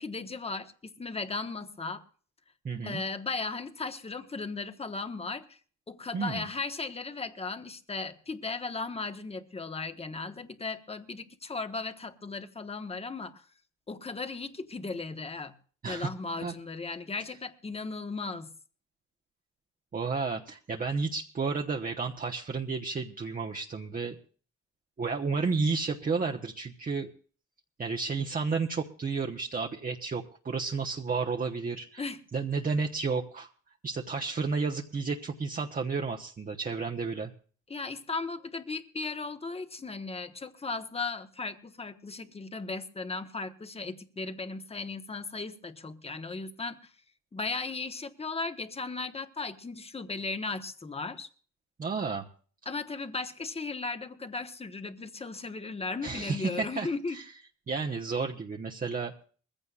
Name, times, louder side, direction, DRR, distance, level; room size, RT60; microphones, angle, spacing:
voice 1, 0.0-2.0 2.8-5.6 5.9-13.4 13.9-15.5 15.8-18.5 32.0-32.2 37.7-46.9 47.3-51.3 52.6-57.2, left 3 dB, 20° left, 1.1 m, -36 dB
voice 2, 2.6-3.0 6.1-6.4 15.8-16.1 16.4-16.5 19.9-24.2 25.0-27.1 27.8-32.0 32.3-33.5 33.8-37.3 51.8-52.3 56.0-57.2 57.7-59.1, right 4 dB, 30° right, 1.0 m, -32 dB
21.0 x 15.5 x 2.5 m
cardioid pair, 90°, 30 cm